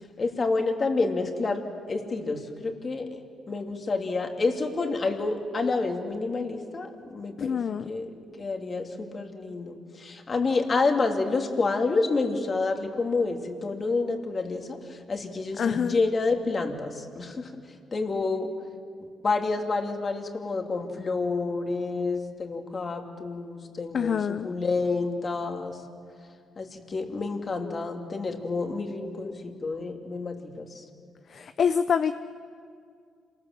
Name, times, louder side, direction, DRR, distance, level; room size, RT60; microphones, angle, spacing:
voice 1, 0.2-1.6 1.9-3.2 3.5-17.5 17.9-18.5 19.2-25.8 26.6-30.8, left 3 dB, 35° left, 4 dB, 2.8 m, -29 dB
voice 2, 7.4-7.9 15.6-16.0 23.9-24.5 31.3-32.1, left 7 dB, 55° left, 10 dB, 0.7 m, -26 dB
27.5 x 19.5 x 7.7 m, 2.2 s
cardioid pair, 90°, 0 cm